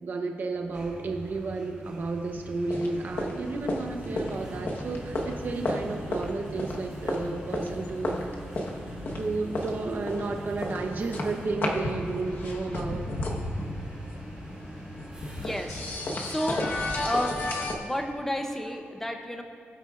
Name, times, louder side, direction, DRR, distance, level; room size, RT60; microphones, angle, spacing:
voice 1, 0.0-8.4 9.1-13.0, right 3 dB, 45° right, 3 dB, 0.8 m, -32 dB
sound 1, 0.6-17.7, right 1 dB, 25° right, 1.6 m, -43 dB
sound 2, 2.7-17.7, left 1 dB, 55° left, 1.1 m, -34 dB
voice 2, 15.4-15.8 16.2-16.7 17.0-19.4, equal, 10° left, 4 dB, 0.6 m, -31 dB
20.5 x 8.5 x 2.4 m, 2.4 s
wide cardioid pair, 160°, 4 cm